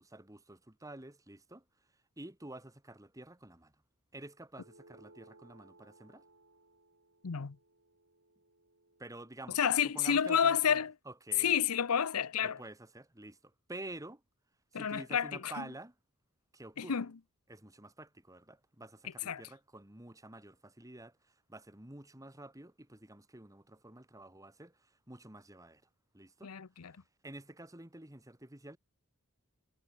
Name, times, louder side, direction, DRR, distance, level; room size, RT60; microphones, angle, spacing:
voice 1, 0.0-3.8 4.1-6.2 9.0-11.6 12.4-14.2 14.7-16.0 16.5-17.0 17.5-25.9 26.1-26.5 26.8-26.9 27.2-28.8, right 1 dB, 15° right, 1.9 m, -50 dB
sound 1, 4.5-9.3, right 2 dB, 60° right, 7.9 m, -63 dB
voice 2, 7.2-7.6 9.6-10.9 11.4-12.6 14.7-15.6 16.8-17.1 19.3-19.4 26.4-26.9, left 8 dB, 90° left, 0.7 m, -30 dB
head